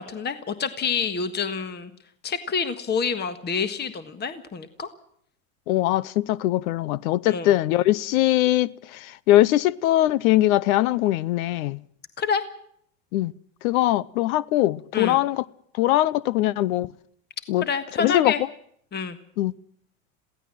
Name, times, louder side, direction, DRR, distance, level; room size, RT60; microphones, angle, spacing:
voice 1, 0.0-1.9 2.2-4.9 7.3-7.5 12.2-12.4 14.9-15.2 17.6-18.4 18.9-19.2, left 5 dB, 25° left, 1.5 m, -27 dB
voice 2, 5.7-11.8 13.1-13.3 13.6-15.4 15.7-16.9 17.5-17.6 18.0-18.3 19.4-19.5, left 15 dB, 75° left, 0.8 m, -21 dB
22.5 x 16.5 x 7.6 m
supercardioid pair, 120°, 42 cm